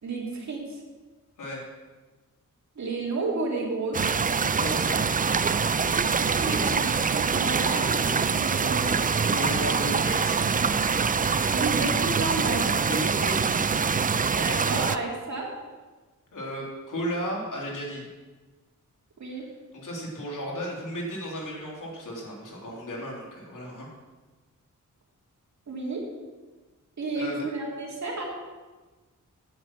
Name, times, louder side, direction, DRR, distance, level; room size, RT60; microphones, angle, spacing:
voice 1, 0.0-0.6 2.8-4.0 6.2-8.9 11.5-12.7 14.4-15.5 19.2-19.4 25.7-26.0 27.0-28.2, right 3 dB, 60° right, -2 dB, 2.7 m, -31 dB
sound 1, 3.9-15.0, right 5 dB, 25° right, 0.4 m, -24 dB
voice 2, 4.4-5.1 6.3-6.7 9.2-10.4 12.9-13.7 16.3-18.1 19.7-23.9 27.1-27.5, equal, 70° left, -3 dB, 3.3 m, -34 dB
9.4 x 8.3 x 6.0 m, 1.3 s
wide cardioid pair, 105°, 32 cm